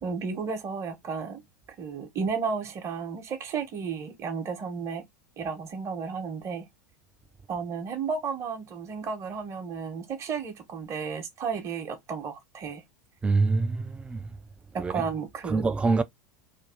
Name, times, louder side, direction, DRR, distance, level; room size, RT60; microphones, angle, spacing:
voice 1, 0.0-1.4 1.8-5.0 5.4-6.7 7.5-12.8 14.7-15.6, right 5 dB, 30° right, 0.9 m, -33 dB
voice 2, 13.2-14.4 14.8-15.0 15.5-16.0, right 3 dB, 10° right, 0.3 m, -25 dB
2.6 x 2.3 x 3.5 m
figure-of-eight pair, 85°, 10 cm